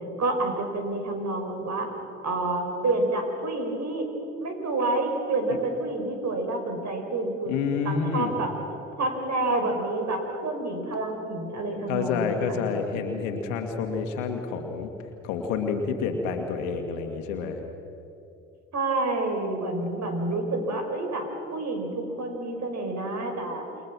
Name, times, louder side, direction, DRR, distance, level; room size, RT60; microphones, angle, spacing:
voice 1, 0.2-1.9 2.2-4.1 4.4-7.5 7.8-8.5 9.0-12.6 18.7-23.7, right 2 dB, 45° right, 4 dB, 5.6 m, -28 dB
voice 2, 7.5-8.3 11.9-14.9 15.2-17.6, left 5 dB, 75° left, 5 dB, 2.0 m, -28 dB
28.5 x 22.5 x 6.2 m, 2.7 s
hypercardioid pair, 55°, 38 cm